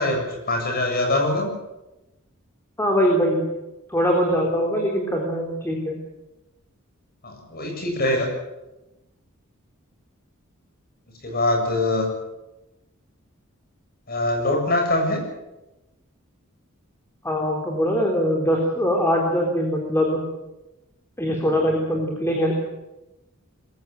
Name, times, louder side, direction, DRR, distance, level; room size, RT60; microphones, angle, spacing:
voice 1, 0.0-1.5 7.2-8.3 11.2-12.1 14.1-15.2, left 2 dB, 45° left, 3 dB, 7.3 m, -23 dB
voice 2, 2.8-3.4 3.9-6.0 17.2-20.3 21.2-22.5, equal, 10° left, 0 dB, 3.7 m, -22 dB
22.0 x 16.0 x 9.1 m, 0.99 s
head